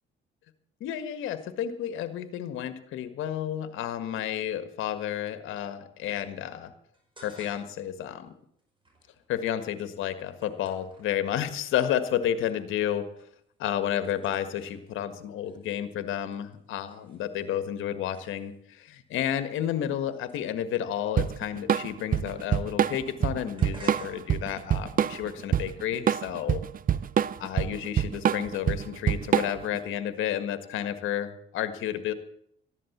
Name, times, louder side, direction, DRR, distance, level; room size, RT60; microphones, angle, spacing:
voice 1, 0.8-6.7 7.2-8.3 9.3-13.0 13.6-26.6 27.4-32.1, left 10 dB, 90° left, 10 dB, 1.6 m, -31 dB
sound 1, 6.9-7.9 8.2-11.8 12.2-12.7 13.0-13.4 13.7-18.8 19.4-22.6 22.9-26.1, right 1 dB, 25° right, 5.9 m, -56 dB
Drum kit / Drum, 21.2-29.8, right 9 dB, 45° right, 0.6 m, -26 dB
14.5 x 11.5 x 7.2 m, 0.68 s
cardioid pair, 90°, 20 cm